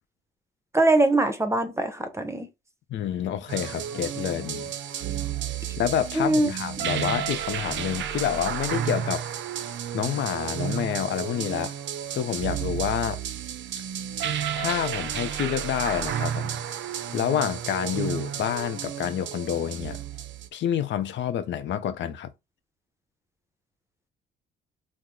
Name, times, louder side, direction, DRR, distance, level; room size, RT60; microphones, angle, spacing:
voice 1, 0.7-2.5 6.1-6.5, right 2 dB, 15° right, 0.7 m, -22 dB
voice 2, 2.9-4.7 5.8-9.2 9.9-11.8 12.1-13.2 14.6-16.6 17.1-20.0 20.5-22.3, left 9 dB, 70° left, 0.5 m, -28 dB
sound 1, 3.5-20.5, right 9 dB, 70° right, 0.5 m, -32 dB
2.9 x 2.1 x 3.6 m
cardioid pair, 90°, 20 cm